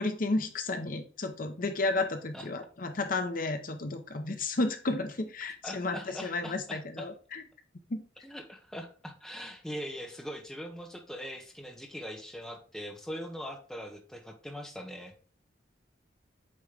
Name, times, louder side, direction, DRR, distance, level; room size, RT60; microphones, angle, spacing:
voice 1, 0.0-7.4 7.9-8.0, left 2 dB, 45° left, 7 dB, 0.7 m, -32 dB
voice 2, 5.6-7.1 8.2-15.2, equal, 5° left, 3 dB, 1.0 m, -41 dB
8.5 x 3.1 x 5.0 m, 0.41 s
head